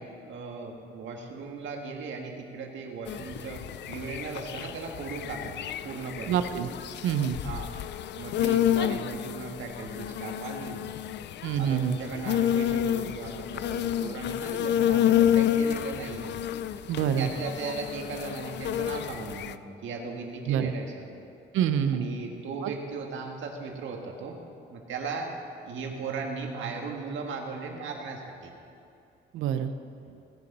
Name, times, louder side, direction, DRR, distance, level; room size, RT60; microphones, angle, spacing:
voice 1, 0.0-5.6 5.8-6.4 7.4-7.7 8.2-10.8 11.5-16.4 17.2-21.1 21.9-24.4 24.7-25.3 25.6-28.5, right 4 dB, 75° right, 2 dB, 1.7 m, -37 dB
sound 1, 3.1-19.5, left 10 dB, 65° left, 0.4 m, -29 dB
voice 2, 6.3-6.7 7.0-7.4 11.4-12.0 16.9-17.3 20.5-20.7 21.5-22.1 22.6-22.7 29.3-29.7, right 9 dB, 90° right, 10 dB, 0.7 m, -26 dB
17.0 x 6.8 x 5.5 m, 2.6 s
cardioid pair, 90°, 20 cm